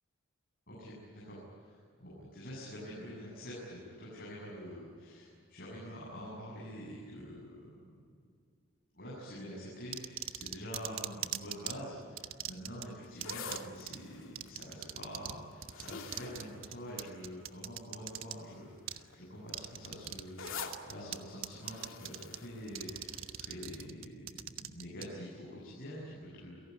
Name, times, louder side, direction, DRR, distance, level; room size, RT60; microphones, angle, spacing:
voice 1, 0.7-7.9 8.9-26.6, equal, 45° left, -5 dB, 7.7 m, -46 dB
sound 1, 9.9-11.7 12.2-12.9 13.2-13.6 13.9-14.0 14.4-15.4 15.6-18.3 18.9-19.0 19.5-20.2 20.5-21.2 21.4-22.4 22.7-25.1, right 11 dB, 80° right, 1.2 m, -40 dB
sound 2, 13.0-17.5 18.2-18.5 18.8-23.4 23.8-23.9, left 4 dB, 75° left, 2.6 m, -47 dB
29.5 x 18.0 x 9.9 m, 2.2 s
head